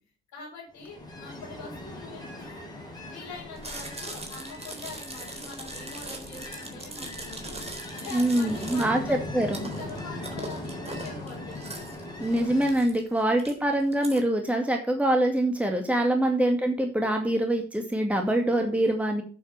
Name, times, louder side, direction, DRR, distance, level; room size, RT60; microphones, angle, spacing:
voice 1, 0.3-2.6 3.0-7.6 7.9-9.2 9.8-11.7, left 4 dB, 65° left, -8 dB, 5.2 m, -44 dB
Ocean, 0.7-12.9, left 1 dB, 10° left, 5.7 m, -40 dB
Chewing mastication, 3.6-14.2, right 2 dB, 20° right, 3.8 m, -41 dB
voice 2, 8.1-9.7 12.2-19.2, right 1 dB, 5° right, 3 dB, 2.2 m, -24 dB
8.5 x 7.6 x 7.0 m, 0.40 s
figure-of-eight pair, 40°, 32 cm